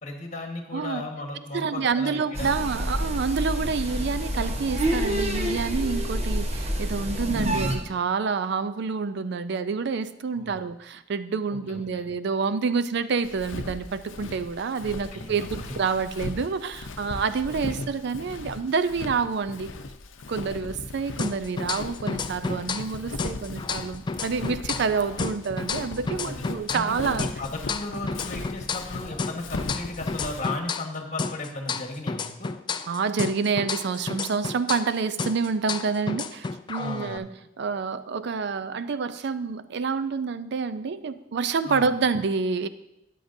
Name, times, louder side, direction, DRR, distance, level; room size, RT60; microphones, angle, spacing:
voice 1, 0.0-2.9 3.6-3.7 10.3-10.6 11.5-12.1 15.1-15.8 17.7-17.8 26.2-26.4 26.7-32.5 36.8-37.2 41.6-41.9, left 2 dB, 40° left, 3 dB, 1.4 m, -36 dB
voice 2, 1.5-19.7 20.3-27.3 32.9-37.3 37.6-42.7, right 5 dB, 60° right, 13 dB, 0.4 m, -28 dB
sound 1, 2.3-7.8, equal, 35° right, 1.0 m, -28 dB
Walk footsteps, 13.2-30.6, left 3 dB, 80° left, 0.6 m, -38 dB
sound 2, 21.2-22.9 23.2-26.9 27.2-30.9 31.2-34.9 35.2-37.2, left 4 dB, 25° left, 0.3 m, -32 dB
13.0 x 9.3 x 2.7 m, 0.86 s
head